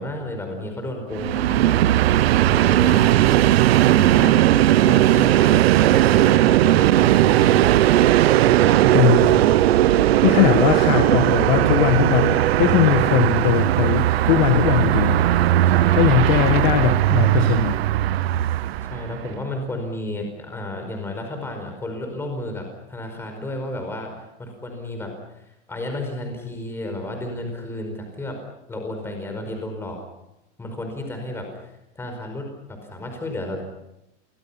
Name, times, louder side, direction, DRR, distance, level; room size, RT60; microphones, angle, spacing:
voice 1, 0.0-2.1 2.5-7.7 8.4-8.7 15.7-16.2 18.9-24.1 24.4-28.4 28.7-30.0 30.6-33.6, left 1 dB, 5° left, 4 dB, 4.9 m, -32 dB
Train, 1.1-19.2, right 14 dB, 55° right, 0.9 m, -17 dB
sound 1, 7.3-12.3, right 2 dB, 35° right, 7.8 m, -35 dB
voice 2, 8.9-9.5 10.2-15.2 15.9-17.8, left 11 dB, 35° left, 7 dB, 1.5 m, -20 dB
29.5 x 25.0 x 5.8 m, 0.88 s
supercardioid pair, 180°, 37 cm